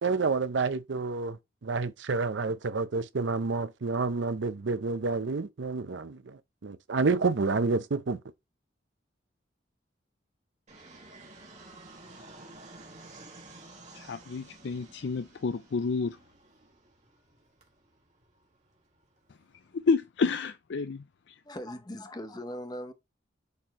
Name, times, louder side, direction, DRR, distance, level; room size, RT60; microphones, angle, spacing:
voice 1, 0.0-8.2, right 4 dB, 75° right, 0.6 m, -29 dB
Fixed-wing aircraft airplane, 10.7-19.7, right 2 dB, 40° right, 2.0 m, -52 dB
voice 2, 13.9-16.2 19.7-21.3, left 4 dB, 65° left, 0.4 m, -30 dB
voice 3, 21.4-22.9, left 1 dB, 20° left, 0.8 m, -39 dB
8.3 x 4.4 x 2.9 m
head